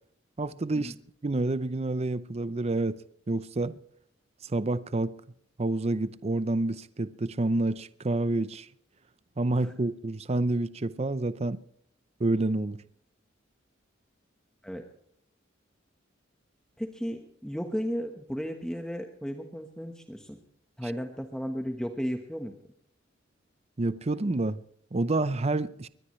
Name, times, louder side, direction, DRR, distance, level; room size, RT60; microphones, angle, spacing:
voice 1, 0.4-0.9 1.2-3.0 3.3-3.8 4.4-5.1 5.6-8.7 9.4-11.6 12.2-12.8 20.8-20.9 23.8-24.6 24.9-25.9, right 2 dB, 35° right, 0.6 m, -28 dB
voice 2, 16.8-20.4 20.8-22.5, equal, 5° left, 1.2 m, -34 dB
22.5 x 20.0 x 3.2 m
head